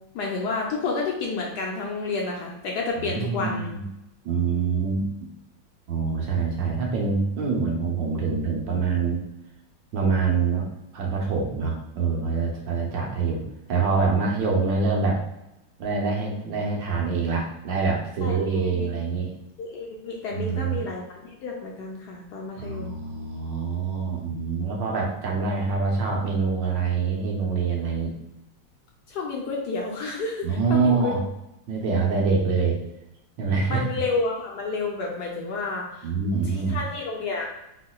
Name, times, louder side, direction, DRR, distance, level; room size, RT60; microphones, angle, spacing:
voice 1, 0.1-3.7 18.2-18.4 18.6-18.9 19.6-22.9 29.1-31.1 33.7-36.1 36.4-37.5, left 3 dB, 65° left, -1 dB, 1.1 m, -30 dB
voice 2, 3.0-3.8 4.2-5.1 5.9-9.2 9.9-10.6 10.9-13.4 13.7-15.2 15.8-19.3 20.3-20.8 22.6-28.1 30.4-31.2 31.7-32.8 33.4-33.8 36.0-36.8, right 4 dB, 70° right, 0 dB, 1.5 m, -25 dB
4.6 x 4.1 x 2.3 m, 0.89 s
omnidirectional pair, 2.2 m